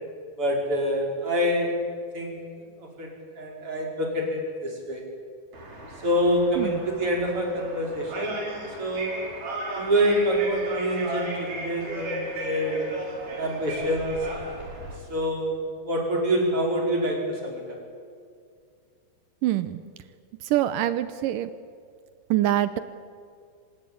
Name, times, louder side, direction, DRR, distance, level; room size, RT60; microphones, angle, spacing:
voice 1, 0.4-1.7 2.1-2.4 3.0-3.1 3.4-5.0 6.0-9.1 9.7-13.0 13.4-14.5 15.1-17.6, equal, 30° right, 0 dB, 5.7 m, -26 dB
sound 1, 5.5-15.0, right 1 dB, 50° right, 6.0 m, -35 dB
voice 2, 19.4-19.8 20.4-21.5 22.3-22.8, right 13 dB, 80° right, 13 dB, 1.9 m, -24 dB
26.0 x 19.0 x 8.7 m, 2.2 s
omnidirectional pair, 4.8 m